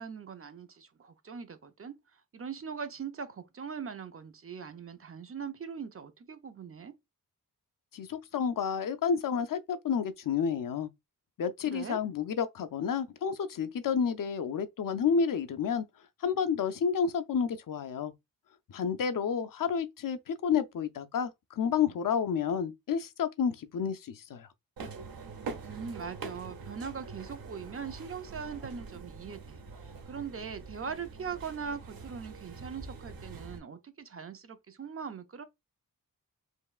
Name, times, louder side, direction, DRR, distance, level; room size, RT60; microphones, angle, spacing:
voice 1, 0.0-6.9 11.7-12.0 25.7-35.4, right 6 dB, 40° right, 0.5 m, -41 dB
voice 2, 7.9-10.9 11.4-15.9 16.2-18.1 18.7-24.5, left 7 dB, 65° left, 0.5 m, -30 dB
sound 1, 24.8-33.6, right 4 dB, 80° right, 0.9 m, -44 dB
4.5 x 3.0 x 2.3 m
wide cardioid pair, 155°, 35 cm